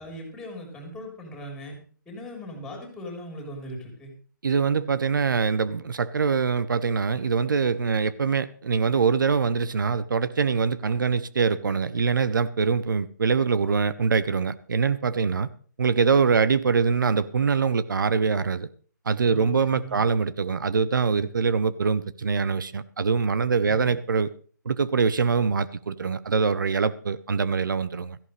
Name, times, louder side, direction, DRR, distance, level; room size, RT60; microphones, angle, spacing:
voice 1, 0.0-1.8 2.1-4.1 19.2-20.1 23.6-24.0, equal, 5° left, 3.8 m, -39 dB
voice 2, 4.4-15.5 15.8-18.7 19.1-24.3 24.6-28.2, right 5 dB, 75° right, 0.8 m, -24 dB
16.5 x 14.0 x 3.3 m
hypercardioid pair, 155°, 11 cm